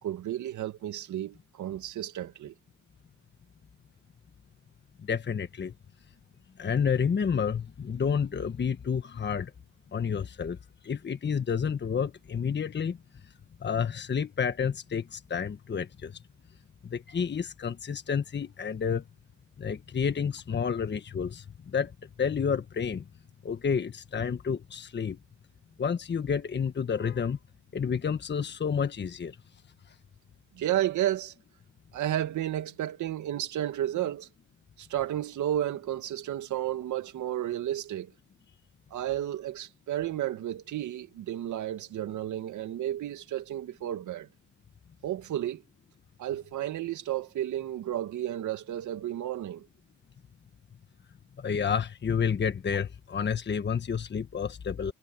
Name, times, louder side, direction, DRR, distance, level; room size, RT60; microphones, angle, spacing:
voice 1, 0.0-2.5 30.5-31.3 31.9-34.3 34.8-38.1 38.9-44.3 45.0-45.6 46.2-49.7, right 12 dB, 75° right, 2.3 m, -32 dB
voice 2, 5.0-5.7 6.6-9.5 9.9-10.6 10.8-13.0 13.6-16.2 16.8-19.0 19.6-23.0 23.4-25.2 25.8-27.4 27.7-29.4 51.4-54.9, left 6 dB, 35° left, 1.3 m, -30 dB
cardioid pair, 90°, 30 cm